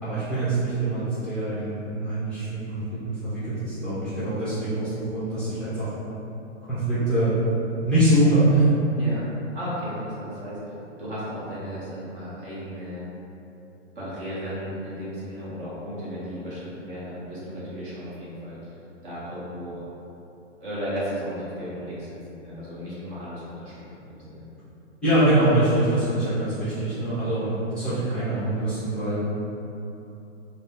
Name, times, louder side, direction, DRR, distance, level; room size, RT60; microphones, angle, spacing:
voice 1, 0.0-5.9 6.7-7.3 7.8-8.7 25.0-29.2, right 1 dB, 5° left, -14 dB, 0.5 m, -24 dB
voice 2, 8.9-9.2 9.5-10.6 11.0-13.0 13.9-18.6 19.0-19.8 20.6-24.4, equal, 45° right, -9 dB, 1.3 m, -35 dB
3.7 x 2.3 x 3.8 m, 2.9 s
hypercardioid pair, 155°, 36 cm